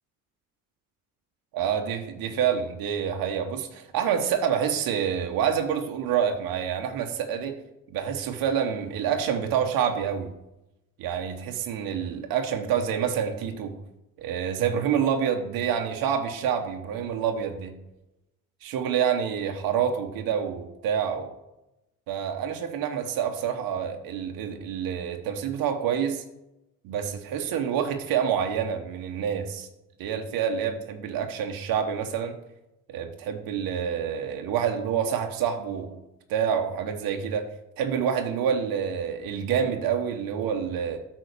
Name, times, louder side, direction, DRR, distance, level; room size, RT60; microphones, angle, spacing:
voice 1, 1.5-7.5 7.9-10.3 11.0-13.8 14.2-17.7 18.6-21.3 22.1-26.2 26.8-29.7 30.0-32.4 32.9-36.0 36.3-37.5 37.8-41.0, right 8 dB, 80° right, 4 dB, 1.1 m, -27 dB
8.8 x 4.0 x 6.6 m, 0.92 s
supercardioid pair, 75°, 35 cm